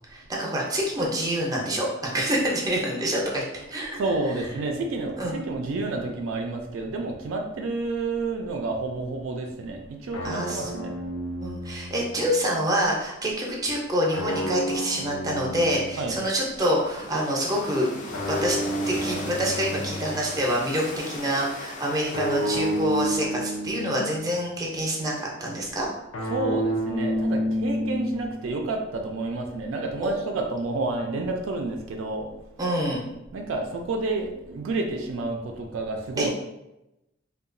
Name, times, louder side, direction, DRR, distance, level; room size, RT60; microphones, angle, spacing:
voice 1, 0.1-4.0 5.2-5.3 10.2-10.7 11.4-17.9 18.3-18.6 18.9-25.9 30.0-30.1 32.6-33.0 36.2-36.3, equal, 20° right, -2 dB, 0.5 m, -26 dB
voice 2, 4.0-11.0 16.0-16.2 26.3-32.3 33.3-36.3, right 2 dB, 70° right, 3 dB, 0.3 m, -29 dB
sound 1, 10.1-12.5 14.1-16.4 18.1-20.4 22.1-24.4 26.1-28.5, equal, 90° left, 0.5 m, -30 dB
sound 2, 16.4-23.4, left 2 dB, 40° left, 0.4 m, -38 dB
2.8 x 2.2 x 2.5 m, 0.92 s
head